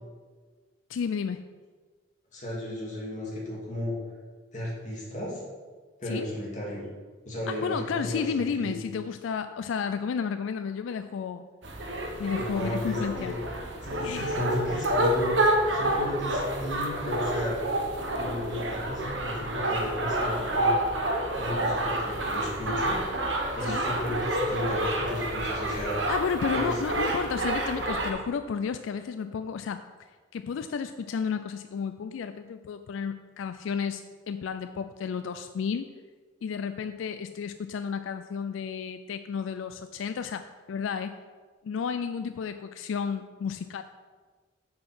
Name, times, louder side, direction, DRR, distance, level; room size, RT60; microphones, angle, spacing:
voice 1, 0.9-1.4 6.1-6.3 7.5-11.5 12.2-13.3 14.0-14.4 23.6-23.9 26.1-29.8 30.3-35.9 36.4-41.2 41.6-43.8, left 6 dB, 85° left, 9 dB, 0.3 m, -32 dB
voice 2, 2.3-3.9 4.5-5.4 6.0-6.8 7.2-8.7 12.4-13.4 13.8-15.4 15.7-17.5 18.1-20.8 21.3-23.0 23.5-26.0 26.5-26.8, left 1 dB, 40° left, -5 dB, 2.6 m, -34 dB
sound 1, 11.6-28.1, right 1 dB, 70° right, 1.1 m, -29 dB
6.4 x 5.7 x 6.1 m, 1.5 s
head